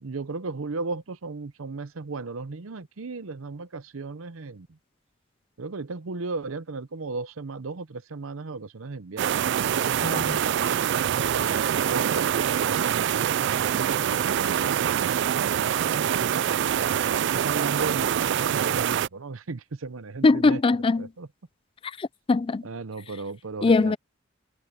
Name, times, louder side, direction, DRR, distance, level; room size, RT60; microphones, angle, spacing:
voice 1, 0.0-4.7 5.6-9.3 10.2-11.0 11.3-12.5 12.8-16.3 17.1-20.6 21.0-21.3 22.6-23.9, right 3 dB, 85° right, 0.8 m, -36 dB
sound 1, 9.2-19.1, right 9 dB, 60° right, 0.3 m, -25 dB
voice 2, 10.0-10.4 20.2-21.1 22.0-22.6 23.6-24.0, left 3 dB, 25° left, 0.3 m, -21 dB
head